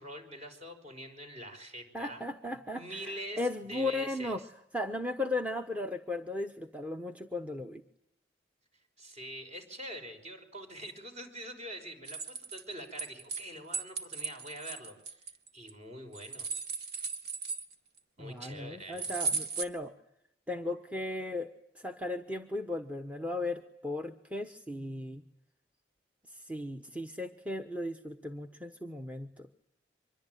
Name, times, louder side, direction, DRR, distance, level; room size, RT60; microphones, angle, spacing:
voice 1, 0.0-2.2 2.5-4.4 9.0-16.5 18.2-19.1, equal, 35° right, 5 dB, 5.3 m, -45 dB
voice 2, 1.9-4.4 4.7-7.8 18.2-19.9 20.5-25.2 26.3-29.5, left 2 dB, 10° right, 6 dB, 1.1 m, -36 dB
sound 1, 12.0-13.4 13.7-15.7 16.1-18.0 19.0-19.6, right 5 dB, 60° right, 2.2 m, -36 dB
25.5 x 22.5 x 9.3 m, 0.77 s
head